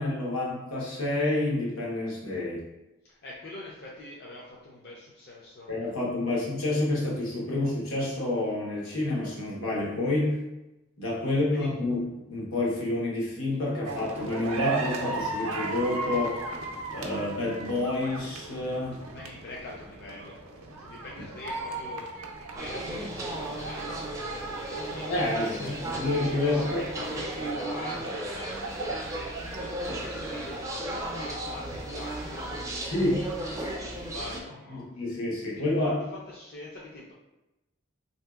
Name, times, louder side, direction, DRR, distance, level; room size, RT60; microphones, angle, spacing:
voice 1, 0.0-2.6 5.7-10.4 11.0-16.4 16.9-19.0 25.1-26.8 32.8-33.2 34.7-36.0, left 2 dB, 80° left, -4 dB, 1.0 m, -29 dB
voice 2, 3.0-5.7 6.3-6.4 11.5-11.8 19.1-22.2 22.5-34.9 35.5-37.1, left 2 dB, 50° left, -5 dB, 0.4 m, -44 dB
sound 1, 13.9-32.7, right 2 dB, 85° right, 0.4 m, -37 dB
sound 2, 22.6-34.4, right 1 dB, 15° right, 0.3 m, -35 dB
3.6 x 2.7 x 2.3 m, 0.96 s
head